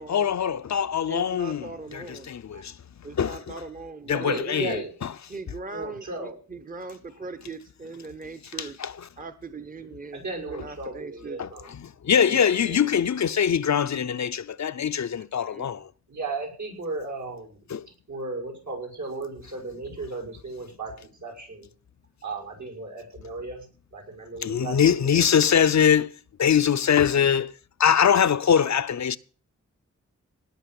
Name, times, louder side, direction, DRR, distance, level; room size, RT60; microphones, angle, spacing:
voice 1, 0.0-2.7 3.1-3.6 4.1-5.1 8.6-9.1 11.4-11.5 11.8-15.9 17.7-17.8 24.4-26.1 26.4-27.5 27.8-29.2, left 8 dB, 70° left, 0.7 m, -23 dB
voice 2, 1.1-2.3 3.0-4.8 5.3-8.8 9.2-10.2 10.5-11.4 12.3-12.4 12.6-12.9 15.4-15.7, right 3 dB, 30° right, 0.9 m, -39 dB
voice 3, 4.1-4.9 5.7-6.4 10.1-11.7 16.1-17.6 18.1-21.7 22.2-23.7 23.9-25.2, right 3 dB, 75° right, 5.9 m, -35 dB
18.0 x 6.1 x 7.7 m
wide cardioid pair, 110°, 29 cm